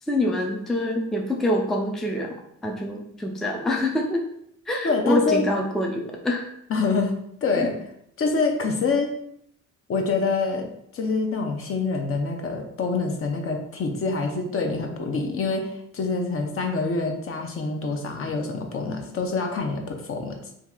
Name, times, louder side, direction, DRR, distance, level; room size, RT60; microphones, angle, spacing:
voice 1, 0.1-2.3 2.6-4.2 4.7-6.5, left 1 dB, ahead, 2 dB, 0.4 m, -25 dB
voice 2, 4.8-5.4 6.7-7.1 7.4-7.7 8.2-9.1 9.9-10.7 10.9-20.4, left 4 dB, 45° left, 4 dB, 0.6 m, -26 dB
2.8 x 2.4 x 3.6 m, 0.73 s
cardioid pair, 90°, 30 cm